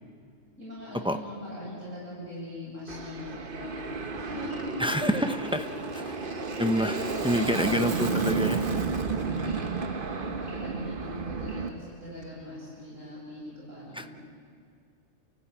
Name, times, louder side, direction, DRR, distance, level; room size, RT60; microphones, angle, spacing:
voice 1, 0.6-4.5 6.1-7.5 7.8-8.1 9.2-14.3, left 1 dB, 80° right, -10 dB, 8.1 m, -41 dB
Aircraft, 2.9-11.7, right 4 dB, 45° right, 1.2 m, -32 dB
sound 1, 4.5-11.6, equal, 45° left, 3.7 m, -55 dB
sound 2, 4.8-8.2 12.1-12.2, left 2 dB, 80° left, 3.4 m, -47 dB
voice 2, 4.8-5.7 5.9-6.0 6.6-6.9 7.2-8.6 13.9-14.1, equal, 5° right, 6 dB, 0.7 m, -27 dB
29.5 x 15.5 x 8.9 m, 2.3 s
omnidirectional pair, 1.3 m